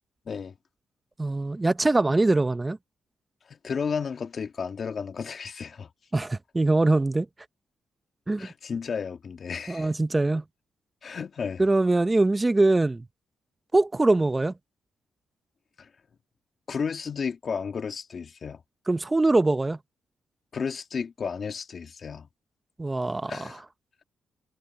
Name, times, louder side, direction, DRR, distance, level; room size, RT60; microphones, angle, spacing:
voice 1, 1.2-2.8 6.1-7.3 8.3-8.5 9.7-10.4 11.6-13.0 13.7-14.5 18.9-19.8 22.8-23.6, right 2 dB, 20° right, 0.7 m, -23 dB
voice 2, 3.5-5.9 8.4-9.9 11.0-11.6 15.8-15.9 16.7-18.6 20.5-22.3 23.3-23.6, left 6 dB, 55° left, 2.1 m, -33 dB
cardioid pair, 75°, 0 cm